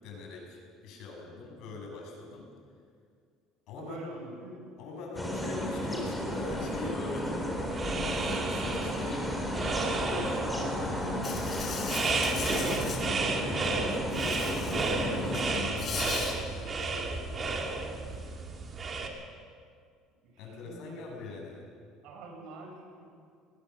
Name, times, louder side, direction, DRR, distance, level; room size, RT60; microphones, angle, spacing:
voice 1, 0.0-2.5 3.7-4.0 4.8-7.4 8.1-11.5 12.3-17.8 18.1-18.2 20.4-21.7, left 3 dB, 65° left, 0 dB, 6.8 m, -42 dB
voice 2, 3.8-4.6 20.2-21.0 22.0-23.1, right 2 dB, 70° right, 1 dB, 6.6 m, -45 dB
sound 1, 5.1-15.6, equal, ahead, 4.0 m, -33 dB
sound 2, 7.6-19.1, right 4 dB, 30° right, 2.8 m, -33 dB
Insect, 11.2-13.0 14.1-14.9 15.2-16.3, left 5 dB, 35° left, 4.2 m, -38 dB
21.5 x 19.5 x 6.9 m, 2.2 s
cardioid pair, 115°, 0 cm